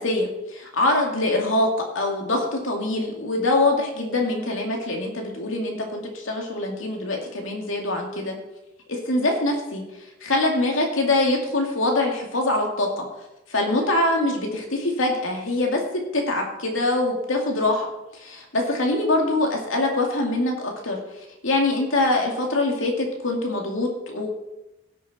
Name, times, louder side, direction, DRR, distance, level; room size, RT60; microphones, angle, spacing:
voice 1, 0.0-1.7 1.9-8.4 8.9-9.8 10.2-13.1 13.5-17.9 18.2-20.5 20.8-21.0 21.4-24.3, left 2 dB, 80° left, 1 dB, 2.4 m, -24 dB
16.5 x 6.7 x 4.3 m, 0.94 s
head